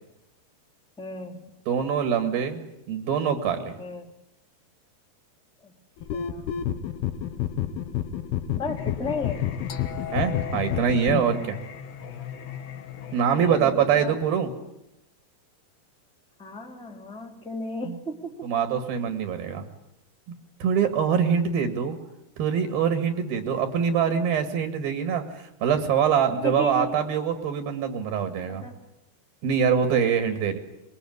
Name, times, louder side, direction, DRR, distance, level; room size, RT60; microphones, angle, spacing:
voice 1, 1.0-1.4 3.8-4.1 5.6-5.7 6.1-6.6 8.6-9.5 13.3-14.1 16.4-18.3 26.4-27.0 28.5-28.8, left 2 dB, ahead, 2 dB, 2.1 m, -34 dB
voice 2, 1.7-2.6 2.9-3.7 10.1-11.6 13.1-14.5 17.9-18.0 18.4-19.6 20.6-22.0 22.4-28.6 29.4-30.6, right 7 dB, 70° right, 7 dB, 3.8 m, -24 dB
sound 1, 6.0-11.2, left 10 dB, 80° left, 3.2 m, -30 dB
Singing, 8.8-13.7, left 8 dB, 55° left, 2.2 m, -37 dB
25.5 x 22.0 x 9.6 m, 0.85 s
omnidirectional pair, 4.6 m